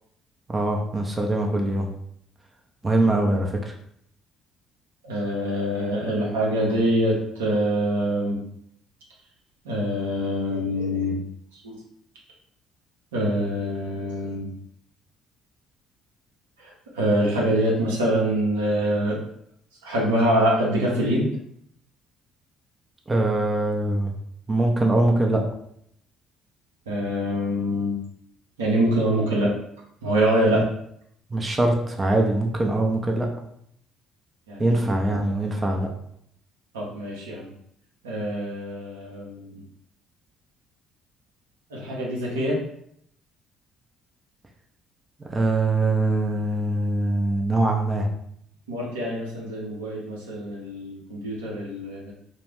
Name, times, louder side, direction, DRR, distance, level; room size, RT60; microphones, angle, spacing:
voice 1, 0.5-1.9 2.8-3.7 23.1-24.1 24.5-25.4 30.5-30.6 31.3-33.3 34.6-35.9 45.2-48.1, right 2 dB, 25° right, 1 dB, 0.5 m, -23 dB
voice 2, 5.0-8.4 9.6-11.2 11.5-11.8 13.1-14.5 16.6-19.2 19.8-21.3 26.9-27.9 28.6-29.5 30.0-30.6 34.5-35.2 36.7-37.5 38.0-39.6 41.7-42.6 48.7-52.1, equal, 85° right, -4 dB, 0.7 m, -25 dB
2.3 x 2.1 x 3.3 m, 0.70 s
hypercardioid pair, 55°, 0 cm